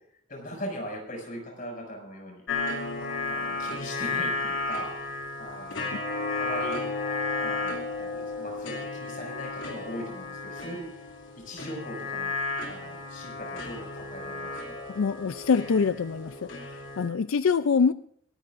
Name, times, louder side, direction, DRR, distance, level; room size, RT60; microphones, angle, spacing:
voice 1, 0.3-4.9 5.4-5.9 6.4-6.8 7.4-11.1 11.4-12.3 12.7-14.8, equal, 40° left, 0 dB, 6.6 m, -40 dB
sound 1, 2.5-17.1, left 3 dB, 70° left, 2.8 m, -33 dB
voice 2, 14.9-16.4 16.7-17.9, left 5 dB, 85° left, 13 dB, 0.5 m, -24 dB
27.5 x 14.0 x 2.6 m, 0.64 s
head